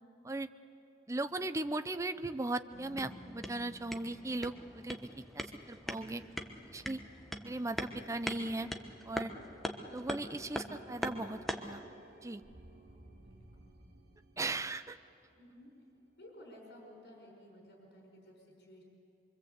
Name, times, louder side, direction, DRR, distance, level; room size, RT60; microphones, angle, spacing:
voice 1, 1.1-6.2 6.7-7.0 7.4-8.7 9.0-9.3 9.9-11.8 12.2-12.4 14.4-15.0, right 2 dB, 20° right, 10 dB, 0.6 m, -38 dB
Keyboard (musical), 2.7-5.5, left 2 dB, 45° left, 2.7 m, -56 dB
sound 1, 2.7-11.8, equal, ahead, 1.2 m, -42 dB
sound 2, 3.2-16.6, right 2 dB, 65° right, 2.7 m, -61 dB
voice 2, 12.7-13.8 15.4-15.7 16.2-18.8, equal, 80° left, 0 dB, 5.3 m, -56 dB
24.5 x 24.5 x 8.1 m, 2.7 s
head